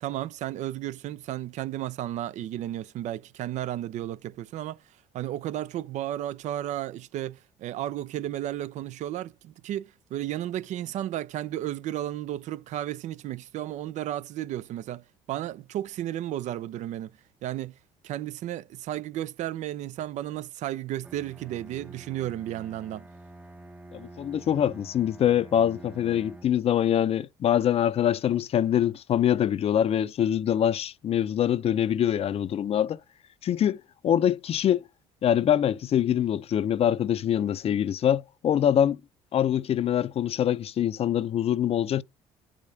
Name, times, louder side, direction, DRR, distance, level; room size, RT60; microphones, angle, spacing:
voice 1, 0.0-4.8 5.1-17.7 18.0-23.1, right 13 dB, 65° right, 0.5 m, -33 dB
Bowed string instrument, 21.0-26.7, right 2 dB, 10° right, 0.6 m, -47 dB
voice 2, 23.9-33.0 33.4-34.8 35.2-39.0 39.3-42.0, left 10 dB, 50° left, 0.5 m, -24 dB
10.5 x 5.0 x 2.7 m
supercardioid pair, 80°, 13 cm